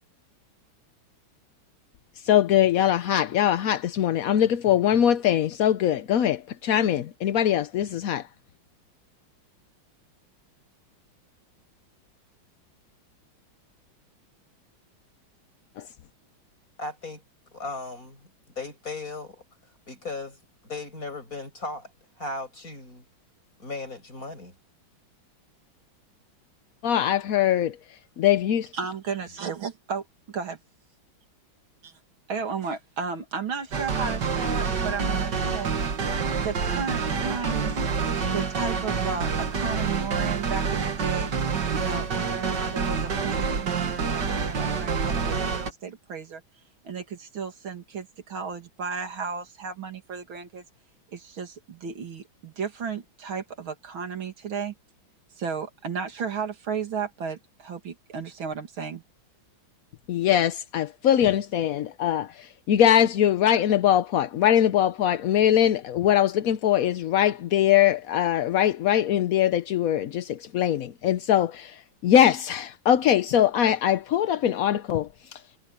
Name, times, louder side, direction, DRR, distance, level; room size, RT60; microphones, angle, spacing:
voice 1, 2.2-8.2 15.8-15.9 26.8-27.8 28.2-28.7 60.1-75.4, left 10 dB, 65° left, 0.9 m, -22 dB
voice 2, 16.8-17.2 17.5-18.2 18.6-19.4 19.9-21.9 22.2-23.0 23.6-24.5, left 3 dB, 40° left, 8.0 m, -36 dB
voice 3, 28.7-30.0 30.3-30.6 31.8-31.9 32.3-35.7 36.4-37.9 38.3-41.3 41.7-46.4 46.8-50.6 51.1-54.7 55.4-59.0, right 6 dB, 75° right, 3.1 m, -34 dB
sound 1, 33.7-45.7, right 5 dB, 55° right, 2.5 m, -27 dB
omnidirectional pair, 2.3 m